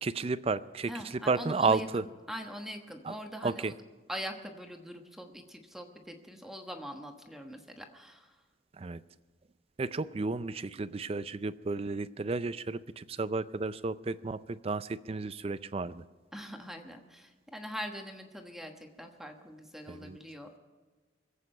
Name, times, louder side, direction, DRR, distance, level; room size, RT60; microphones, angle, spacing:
voice 1, 0.0-0.9 1.3-2.0 3.1-3.2 3.4-3.7 8.8-9.0 9.8-16.0 19.9-20.2, right 3 dB, 30° right, 15 dB, 0.4 m, -32 dB
voice 2, 0.9-3.7 4.1-8.4 16.3-20.6, equal, ahead, 3 dB, 1.2 m, -43 dB
25.0 x 8.5 x 5.6 m, 1.3 s
head